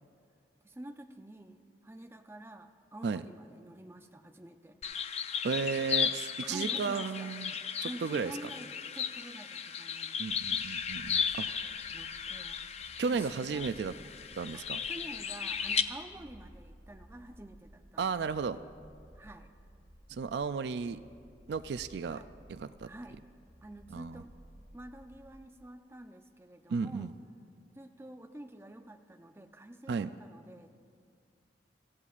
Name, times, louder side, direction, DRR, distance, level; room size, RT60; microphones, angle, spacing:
voice 1, 0.6-4.8 6.0-6.2 6.4-7.3 7.8-10.2 11.1-12.6 13.1-13.6 14.5-14.6 14.9-18.4 19.2-19.5 22.1-22.3 22.8-23.2 23.6-24.3 24.7-27.1 27.7-30.7, right 1 dB, 15° right, 6 dB, 0.5 m, -48 dB
sound 1, 4.8-15.8, left 7 dB, 35° left, 0.4 m, -35 dB
voice 2, 5.4-7.6 7.8-8.5 10.2-11.5 13.0-13.9 14.4-14.8 18.0-18.6 20.1-21.0 21.5-22.2 22.5-22.9 23.9-24.2 26.7-27.1 29.9-30.1, right 5 dB, 65° right, 13 dB, 0.3 m, -34 dB
sound 2, 10.2-25.3, equal, 60° left, 2.5 m, -57 dB
25.0 x 15.0 x 2.5 m, 2.2 s
head